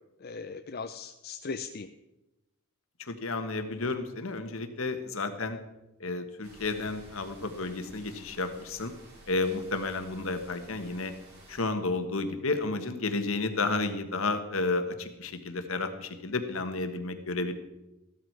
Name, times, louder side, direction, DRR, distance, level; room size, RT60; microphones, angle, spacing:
voice 1, 0.2-1.9, left 4 dB, 45° left, 7 dB, 0.6 m, -38 dB
voice 2, 3.0-5.6 6.0-8.9 9.3-11.1 11.5-17.5, left 3 dB, 65° left, 8 dB, 1.5 m, -32 dB
sound 1, 6.4-11.6, right 1 dB, 50° right, 6.5 m, -53 dB
15.5 x 12.5 x 4.7 m, 0.96 s
head